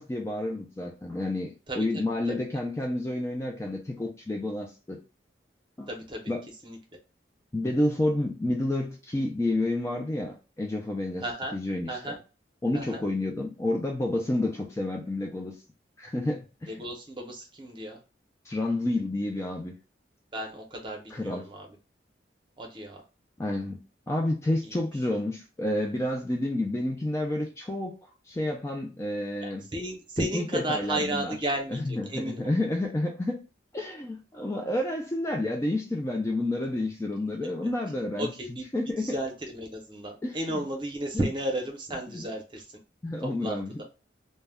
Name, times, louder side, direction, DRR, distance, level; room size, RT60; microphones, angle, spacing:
voice 1, 0.0-5.0 5.8-5.9 6.3-6.4 7.5-11.2 11.5-12.2 12.6-15.6 16.0-16.7 18.5-19.7 21.1-21.4 23.4-23.8 24.1-28.0 28.3-29.7 30.2-31.4 31.7-33.4 33.7-39.2 40.2-40.6 42.1-42.2 43.0-43.7, left 1 dB, 15° left, 0.3 m, -30 dB
voice 2, 5.9-6.3 6.6-6.8 11.2-11.6 11.9-12.2 12.7-13.0 16.7-18.0 20.3-21.7 22.6-23.0 24.6-24.8 29.4-32.5 38.2-38.6 39.0-42.7 43.2-43.6, right 1 dB, 25° right, 0.7 m, -33 dB
2.2 x 2.1 x 3.3 m
head